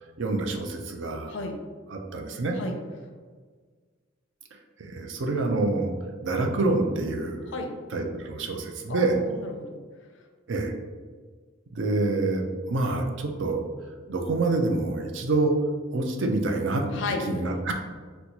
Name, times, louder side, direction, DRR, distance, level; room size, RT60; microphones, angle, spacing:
voice 1, 0.2-1.3 1.9-2.6 4.8-5.9 6.2-7.5 7.9-9.2 10.5-10.7 11.8-13.7 14.1-15.5 15.9-16.8 17.3-17.7, right 2 dB, 65° right, 3 dB, 0.4 m, -27 dB
voice 2, 1.3-1.6 2.6-2.8 7.5-7.7 8.9-9.8 16.9-17.3, left 3 dB, 65° left, 4 dB, 0.4 m, -33 dB
4.2 x 2.2 x 2.8 m, 1.5 s
head